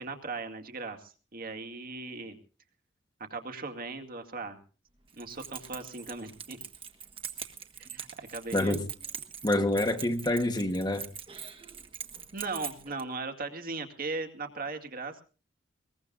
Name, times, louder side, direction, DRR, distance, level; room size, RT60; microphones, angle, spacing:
voice 1, 0.0-2.4 3.2-4.6 5.2-6.6 7.8-8.9 12.3-15.2, right 3 dB, 50° right, 2.2 m, -38 dB
Keys jangling, 5.1-13.0, right 7 dB, 30° right, 1.4 m, -43 dB
voice 2, 8.5-8.8 9.4-11.1, left 1 dB, 25° left, 1.3 m, -27 dB
22.0 x 20.5 x 2.5 m
head